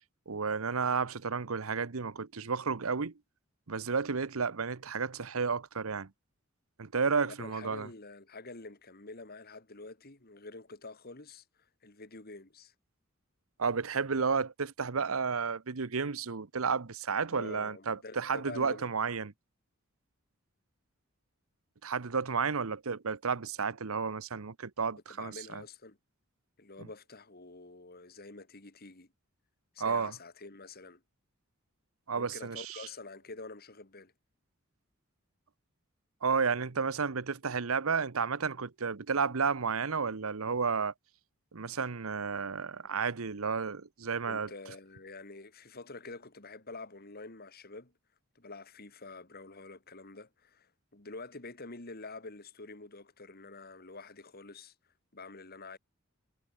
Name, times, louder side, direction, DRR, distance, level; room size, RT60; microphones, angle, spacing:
voice 1, 0.3-3.1 3.7-6.1 6.8-7.9 13.6-19.3 21.8-25.6 29.8-30.1 32.1-32.8 36.2-40.9 41.5-44.5, right 5 dB, 85° right, 0.9 m, -32 dB
voice 2, 7.2-12.7 17.3-18.9 25.1-26.0 26.6-29.1 29.7-31.0 32.2-34.1 44.3-47.9 48.3-54.7 55.1-55.8, left 3 dB, 45° left, 2.6 m, -47 dB
head